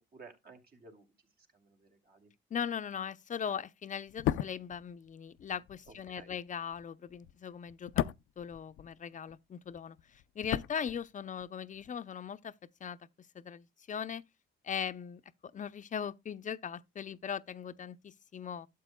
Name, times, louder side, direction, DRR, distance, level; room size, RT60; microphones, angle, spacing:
voice 1, 0.1-1.1 1.4-2.3 5.9-6.3, right 4 dB, 50° right, 2.8 m, -55 dB
voice 2, 2.5-8.1 8.4-12.5 12.8-13.0 13.3-14.2 14.6-15.2 15.5-18.7, left 7 dB, 40° left, 0.6 m, -39 dB
sound 1, 4.1-9.4 9.6-11.5 11.7-11.9, left 13 dB, 80° left, 0.5 m, -37 dB
12.0 x 7.7 x 2.2 m
cardioid pair, 90°, 20 cm